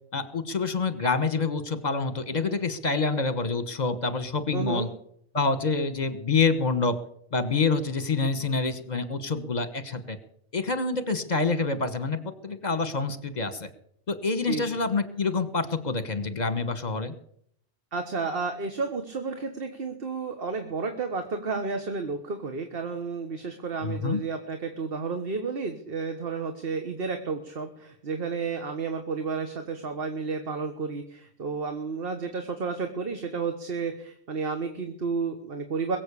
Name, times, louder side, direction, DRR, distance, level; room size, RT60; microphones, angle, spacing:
voice 1, 0.1-4.9 5.3-7.0 7.3-10.2 10.5-13.7 14.1-17.1 23.8-24.2, left 4 dB, 40° left, 11 dB, 1.4 m, -27 dB
voice 2, 4.5-4.9 14.5-14.6 17.9-36.0, right 4 dB, 55° right, 6 dB, 1.5 m, -31 dB
22.0 x 7.8 x 6.9 m, 0.66 s
omnidirectional pair, 1.2 m